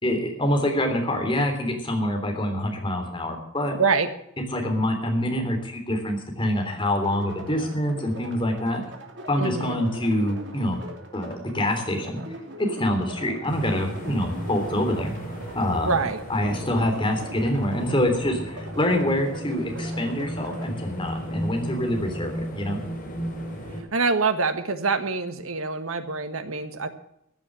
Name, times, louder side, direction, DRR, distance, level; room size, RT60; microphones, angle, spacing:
voice 1, 0.0-3.8 4.5-8.8 9.3-10.8 11.1-12.2 12.6-15.2 15.5-15.9 16.3-22.8, left 1 dB, 25° left, 3 dB, 3.4 m, -25 dB
voice 2, 3.8-4.1 9.4-9.8 15.8-16.2 23.9-26.9, right 4 dB, 85° right, 9 dB, 1.6 m, -25 dB
sound 1, 7.0-20.7, right 1 dB, 55° right, 2.9 m, -41 dB
sound 2, 13.5-23.8, equal, 40° left, 5.1 m, -35 dB
15.0 x 8.8 x 7.5 m, 0.77 s
head